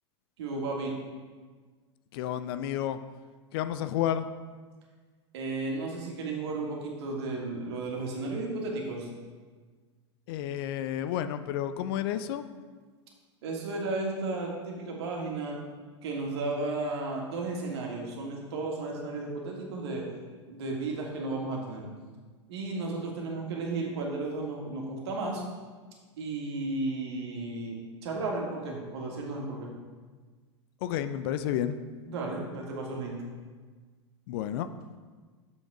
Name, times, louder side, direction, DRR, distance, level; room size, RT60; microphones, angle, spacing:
voice 1, 0.4-0.9 5.3-9.1 13.4-15.6 16.0-20.0 20.5-21.8 22.5-25.4 26.2-29.7 32.1-33.2, right 2 dB, 65° right, -1 dB, 2.0 m, -34 dB
voice 2, 2.1-3.0 3.5-4.3 10.3-12.5 30.8-31.8 34.3-34.7, left 11 dB, 55° left, 11 dB, 0.5 m, -31 dB
7.2 x 6.4 x 4.8 m, 1.4 s
hypercardioid pair, 95°, 15 cm